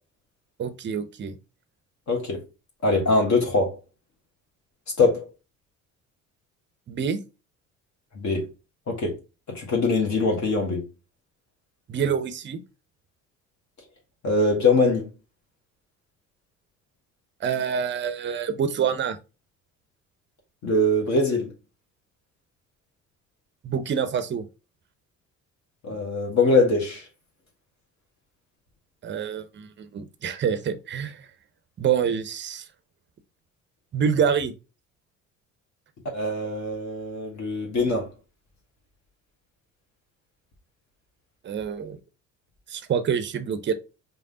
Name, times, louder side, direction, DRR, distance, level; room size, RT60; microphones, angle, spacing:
voice 1, 0.6-1.4 6.9-7.2 11.9-12.6 17.4-19.2 23.6-24.4 29.0-31.3 31.8-32.6 33.9-34.5 41.4-42.0 42.7-43.7, right 7 dB, 30° right, 0.7 m, -26 dB
voice 2, 2.1-2.4 2.8-3.8 5.0-5.3 8.1-8.5 8.9-9.2 9.5-10.9 14.2-15.1 20.6-21.5 25.8-27.0 36.1-38.1, left 2 dB, 45° left, 1.5 m, -22 dB
5.2 x 2.2 x 3.7 m
figure-of-eight pair, 55°, 40 cm